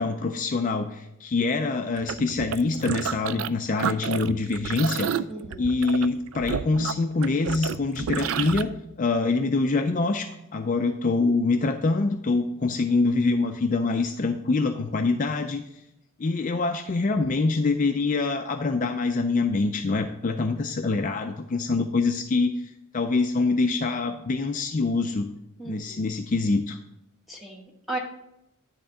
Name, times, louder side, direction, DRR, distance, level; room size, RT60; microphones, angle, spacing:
voice 1, 0.0-5.1 5.6-8.7 9.0-15.8 16.2-25.3 25.6-26.8, left 3 dB, 35° left, 6 dB, 0.4 m, -25 dB
sound 1, 2.0-3.5 3.8-8.6, right 7 dB, 70° right, 0.3 m, -30 dB
voice 2, 5.3-5.7 25.6-26.1 27.3-28.0, right 2 dB, ahead, -1 dB, 1.2 m, -36 dB
10.0 x 3.6 x 6.9 m, 0.85 s
head